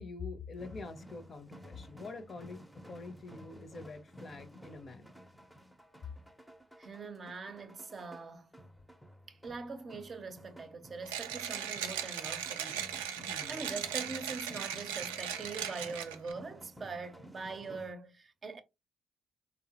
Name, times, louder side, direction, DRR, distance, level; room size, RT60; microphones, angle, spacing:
voice 1, 0.0-5.1 13.3-13.6, left 4 dB, 45° left, 0.6 m, -45 dB
sound 1, 0.6-17.9, equal, ahead, 0.6 m, -54 dB
voice 2, 6.8-8.5 9.3-12.9 13.5-18.6, right 4 dB, 45° right, 0.6 m, -43 dB
Mechanisms, 11.1-16.3, right 9 dB, 85° right, 0.3 m, -38 dB
3.5 x 2.0 x 2.8 m
hypercardioid pair, 50°, 0 cm